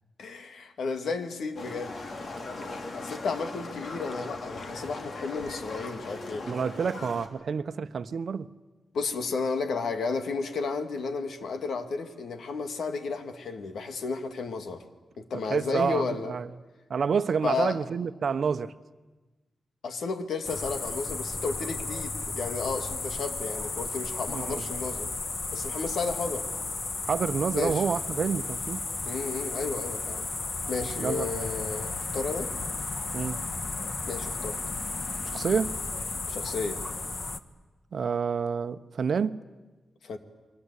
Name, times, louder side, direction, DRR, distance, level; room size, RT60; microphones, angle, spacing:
voice 1, 0.2-1.9 2.9-6.5 8.9-14.8 15.2-16.3 17.4-17.8 19.8-25.1 25.5-26.5 27.5-27.8 29.1-30.3 30.7-32.5 34.1-34.6 36.3-36.8 40.0-40.2, left 4 dB, 85° left, 2.2 m, -33 dB
Livestock farm animals working animals, 1.6-7.3, left 2 dB, 60° left, 3.2 m, -39 dB
voice 2, 6.5-8.5 15.3-16.5 16.9-18.7 24.3-24.6 27.0-28.9 31.0-31.3 33.1-33.4 35.3-35.7 37.9-39.4, right 6 dB, 65° right, 1.0 m, -28 dB
sound 1, 20.4-37.4, left 3 dB, 40° left, 1.4 m, -34 dB
29.5 x 23.0 x 8.3 m
cardioid pair, 95°, 0 cm